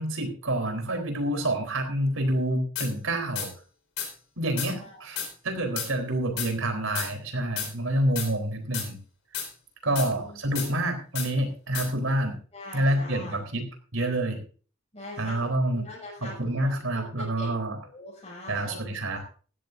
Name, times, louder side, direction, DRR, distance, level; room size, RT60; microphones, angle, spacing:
voice 1, 0.0-3.5 4.4-9.0 9.8-12.4 12.7-13.7 13.9-14.4 15.2-15.8 16.2-17.8 18.5-19.2, right 1 dB, 85° right, 4 dB, 3.9 m, -28 dB
sound 1, 2.8-2.9 3.4-3.5 4.0-4.1 4.6-4.7 5.2-5.3 5.8-5.9 6.4-6.5 7.0-7.1 7.6-7.7 8.2-8.3 8.7-8.9 9.3-9.5 10.0-10.1 10.6-10.7 11.2-11.3 11.7-11.9, left 8 dB, 75° left, 4.7 m, -32 dB
voice 2, 4.6-5.3 9.9-10.4 12.5-13.4 14.9-17.5 17.8-18.8 19.1-19.2, left 2 dB, 30° left, -7 dB, 6.1 m, -43 dB
16.5 x 13.5 x 2.7 m, 0.40 s
head